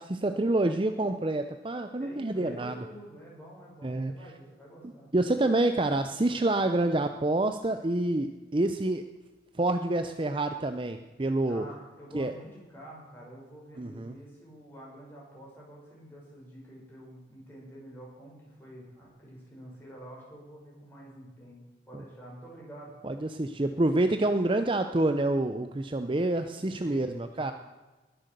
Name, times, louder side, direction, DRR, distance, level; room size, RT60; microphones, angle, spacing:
voice 1, 0.0-2.8 3.8-4.1 5.1-9.0 9.5-11.7 12.1-12.3 13.8-14.1 23.0-27.5, right 2 dB, 25° right, 8 dB, 0.6 m, -27 dB
voice 2, 2.0-5.1 11.5-23.0 26.4-27.5, equal, 10° left, -5 dB, 6.0 m, -48 dB
20.5 x 7.9 x 6.7 m, 1.2 s
head